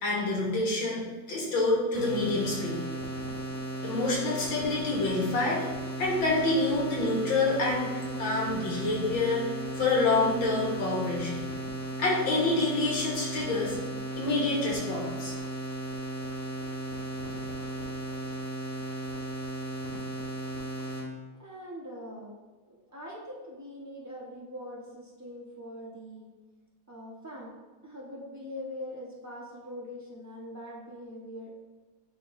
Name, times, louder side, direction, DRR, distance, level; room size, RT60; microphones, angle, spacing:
voice 1, 0.0-2.8 3.8-5.7 6.0-7.9 8.2-9.5 9.8-11.5 12.0-13.8 14.2-15.3, left 2 dB, 70° left, -4 dB, 2.1 m, -27 dB
sound 1, 1.9-21.1, right 1 dB, 20° left, 2.1 m, -36 dB
voice 2, 21.4-22.3 22.7-26.3 26.9-27.5 27.8-31.5, equal, 15° right, -5 dB, 0.6 m, -42 dB
10.5 x 3.8 x 2.6 m, 1.2 s
omnidirectional pair, 2.2 m